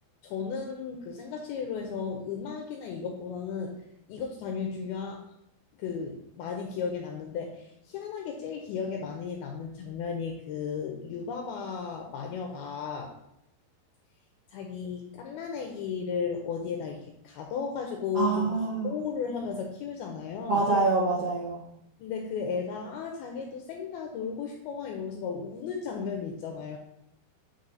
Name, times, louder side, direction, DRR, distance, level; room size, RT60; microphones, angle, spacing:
voice 1, 0.2-3.8 4.1-5.2 5.8-13.2 14.5-20.7 22.0-26.8, left 6 dB, 80° left, 2 dB, 2.4 m, -35 dB
voice 2, 18.1-18.9 20.5-21.6, right 3 dB, 55° right, -7 dB, 1.8 m, -26 dB
8.8 x 4.5 x 4.0 m, 0.78 s
omnidirectional pair, 4.9 m